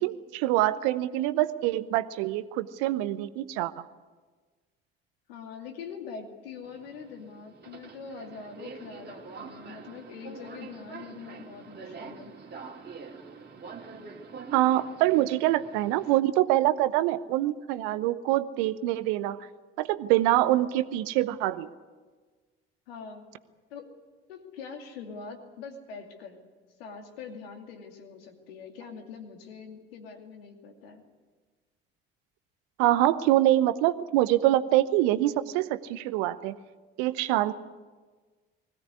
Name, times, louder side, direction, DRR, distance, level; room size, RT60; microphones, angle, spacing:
voice 1, 0.0-3.8 14.5-19.5 19.8-21.7 32.8-36.6 37.0-37.5, right 15 dB, 65° right, 14 dB, 0.9 m, -25 dB
voice 2, 5.3-12.3 22.9-23.3 23.7-23.9 24.3-26.4 26.8-31.0, left 5 dB, 75° left, 4 dB, 2.6 m, -43 dB
Subway metro underground, 6.6-16.2, right 4 dB, 35° right, 2.7 m, -45 dB
21.0 x 16.5 x 9.6 m, 1.4 s
figure-of-eight pair, 55°, 30 cm